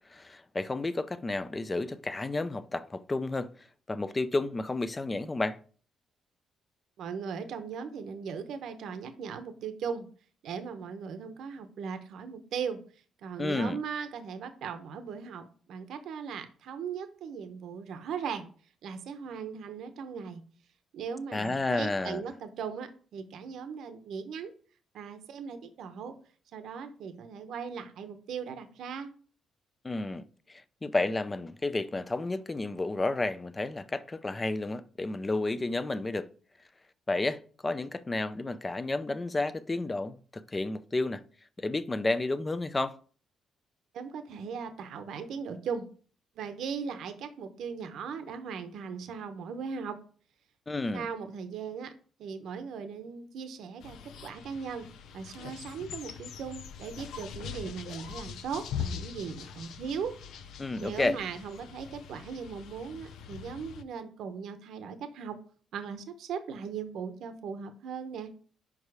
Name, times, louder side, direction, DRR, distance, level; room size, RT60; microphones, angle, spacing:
voice 1, 0.1-5.6 13.4-13.8 21.3-22.2 29.8-36.3 37.1-41.2 41.6-43.0 50.7-51.1 60.6-61.2, left 2 dB, 20° left, 0.5 m, -31 dB
voice 2, 7.0-10.1 10.4-12.8 13.2-18.5 18.8-20.4 20.9-24.5 24.9-26.1 26.5-29.1 43.9-45.9 46.4-50.0 50.9-51.9 52.2-54.9 55.1-60.1 60.8-65.4 65.7-68.3, right 6 dB, 75° right, 0.8 m, -38 dB
sound 1, 53.8-63.8, left 8 dB, 80° left, 0.5 m, -42 dB
5.5 x 4.9 x 4.7 m
cardioid pair, 90°, 0 cm